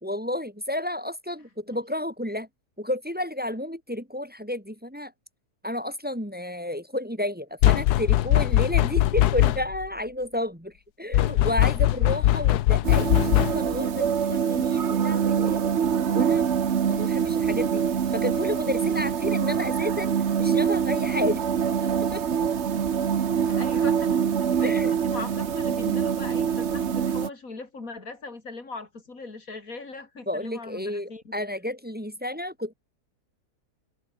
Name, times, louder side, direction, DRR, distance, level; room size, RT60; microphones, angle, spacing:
voice 1, 0.0-2.5 2.8-5.1 5.6-15.6 16.1-16.4 16.8-17.8 18.1-20.1 20.4-21.5 21.8-22.2 24.6-24.9 30.3-32.7, left 1 dB, 5° right, 1.9 m, -31 dB
sound 1, 7.6-9.9 11.1-13.8, left 14 dB, 80° left, 1.2 m, -21 dB
sound 2, 12.8-27.3, right 7 dB, 45° right, 1.3 m, -25 dB
voice 2, 23.4-31.3, left 3 dB, 55° left, 4.1 m, -40 dB
omnidirectional pair, 1.7 m